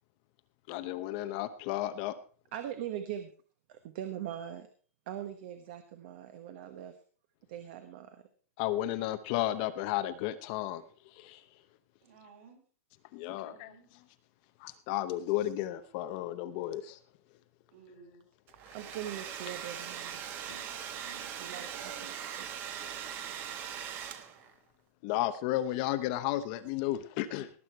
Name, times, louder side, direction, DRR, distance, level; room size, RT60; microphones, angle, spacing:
voice 1, 0.7-2.1 8.6-10.8 11.2-11.4 13.1-13.7 14.6-17.0 20.5-20.6 25.0-27.5, left 14 dB, 30° left, 11 dB, 0.8 m, -33 dB
voice 2, 2.5-3.3 3.7-4.7 5.1-6.9 7.5-8.2 18.7-20.2 21.4-21.9 22.4-22.6, right 10 dB, 40° right, 8 dB, 1.2 m, -41 dB
voice 3, 12.0-12.6 13.2-13.9 17.7-18.3 20.4-22.1, right 6 dB, 55° right, 2 dB, 5.3 m, -55 dB
Domestic sounds home sounds, 18.5-24.5, right 9 dB, 25° right, 1.1 m, -41 dB
18.5 x 8.4 x 4.5 m, 0.42 s
supercardioid pair, 170°, 8 cm